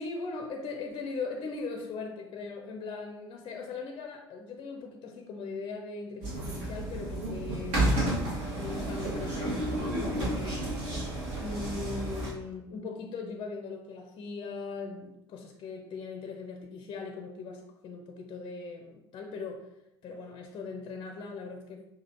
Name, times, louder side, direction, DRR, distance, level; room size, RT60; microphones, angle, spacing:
voice 1, 0.0-8.1 8.6-10.7 11.4-19.7 20.0-21.9, left 4 dB, 35° left, 3 dB, 0.5 m, -39 dB
sound 1, 6.2-12.3, right 1 dB, 55° right, 1.3 m, -31 dB
6.0 x 2.4 x 2.7 m, 0.87 s
figure-of-eight pair, 65°, 14 cm